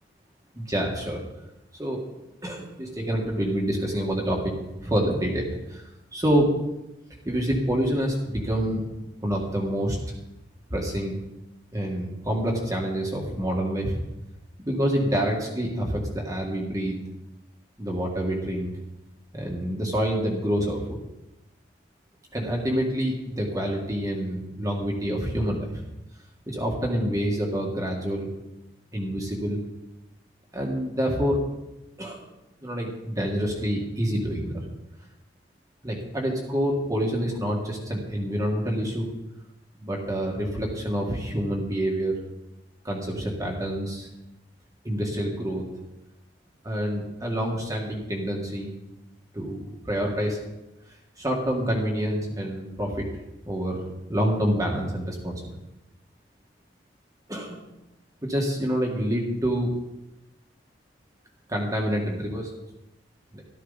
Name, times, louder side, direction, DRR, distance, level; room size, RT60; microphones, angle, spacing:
voice 1, 0.6-1.2 1.8-2.0 2.4-4.5 4.8-6.5 7.3-8.8 9.2-10.0 10.7-11.2 11.7-14.0 14.7-17.0 17.8-18.7 19.3-21.0 22.3-25.8 26.5-28.3 28.9-29.6 30.5-31.4 32.0-32.2 32.6-34.7 35.8-39.1 39.8-42.1 42.8-44.1 44.8-45.6 46.6-48.7 49.3-50.4 51.2-53.1 53.5-53.8 54.1-55.4 57.3-57.6 58.2-59.7 61.5-62.5 63.3-63.4, equal, 20° right, -1 dB, 1.9 m, -27 dB
13.5 x 13.0 x 4.1 m, 0.97 s
head